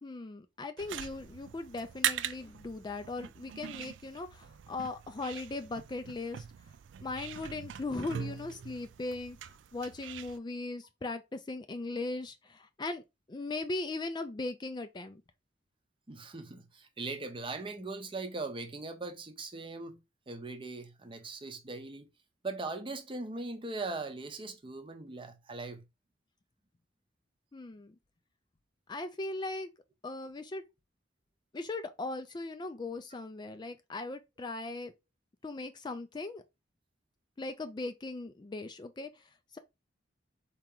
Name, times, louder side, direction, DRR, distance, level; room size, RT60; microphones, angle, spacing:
voice 1, 0.0-6.5 7.0-13.0 13.3-15.2 27.5-28.0 28.9-29.7 30.0-30.6 31.5-34.9 35.4-36.4 37.4-39.6, left 2 dB, 25° left, 0.4 m, -39 dB
sound 1, 0.8-10.4, right 10 dB, 80° right, 0.3 m, -41 dB
voice 2, 16.1-20.0 20.3-22.1 22.4-25.8, right 3 dB, 30° right, 0.7 m, -40 dB
4.4 x 2.9 x 3.7 m
head